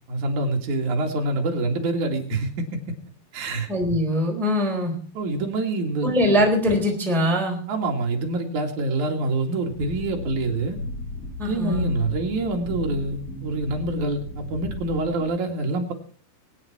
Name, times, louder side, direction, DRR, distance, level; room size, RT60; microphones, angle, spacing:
voice 1, 0.1-2.8 3.3-3.7 5.1-6.1 7.7-10.8 11.5-15.9, right 2 dB, 50° right, 2 dB, 3.2 m, -26 dB
voice 2, 3.7-4.9 6.0-7.6 11.4-11.9, equal, ahead, 0 dB, 3.1 m, -22 dB
sound 1, 9.7-15.3, left 1 dB, 35° left, 4.1 m, -34 dB
24.0 x 8.8 x 4.4 m, 0.43 s
omnidirectional pair, 4.9 m